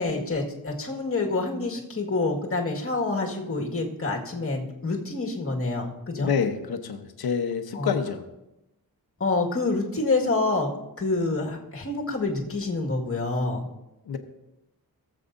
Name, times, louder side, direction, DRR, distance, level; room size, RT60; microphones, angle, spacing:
voice 1, 0.0-6.3 7.7-8.0 9.2-10.7 11.0-13.7, left 3 dB, 35° left, 0 dB, 1.8 m, -27 dB
voice 2, 6.1-8.2 14.1-14.2, left 6 dB, 75° left, 7 dB, 1.1 m, -27 dB
18.0 x 7.6 x 2.7 m, 0.93 s
wide cardioid pair, 115°, 37 cm